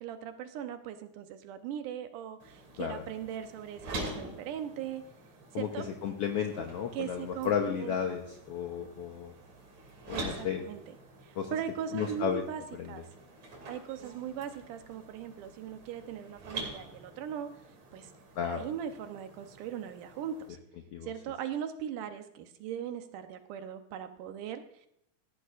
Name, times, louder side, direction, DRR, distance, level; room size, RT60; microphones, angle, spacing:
voice 1, 0.0-5.0 5.5-5.9 6.9-8.2 10.1-11.0 11.2-12.6 12.9-13.0 13.7-17.5 17.9-18.1 18.4-20.4 21.0-24.9, right 9 dB, 85° right, 8 dB, 2.5 m, -39 dB
sound 1, 2.4-20.5, right 2 dB, 60° right, 3.8 m, -46 dB
voice 2, 6.0-9.3 10.1-10.6 11.4-11.5 11.9-12.4 12.8-12.9 18.4-18.7 20.9-21.1, left 7 dB, 65° left, 3 dB, 1.6 m, -33 dB
17.5 x 13.0 x 2.5 m, 0.75 s
omnidirectional pair, 3.6 m